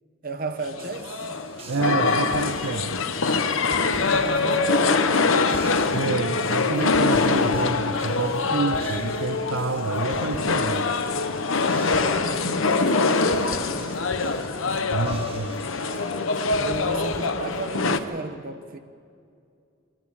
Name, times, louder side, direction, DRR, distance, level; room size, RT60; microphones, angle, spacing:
voice 1, 0.2-1.3 4.1-5.3 12.2-14.1 16.6-18.8, right 3 dB, 45° right, 1.1 m, -35 dB
sound 1, 0.7-18.0, left 3 dB, 75° left, 1.0 m, -24 dB
sound 2, 0.8-16.6, right 3 dB, 30° right, 1.6 m, -47 dB
voice 2, 1.7-3.0 5.9-10.9 14.9-15.6, right 4 dB, 75° right, 0.6 m, -28 dB
sound 3, 2.3-9.2 9.5-10.8 11.1-18.0, equal, 40° left, 3.0 m, -44 dB
23.0 x 14.0 x 8.7 m
head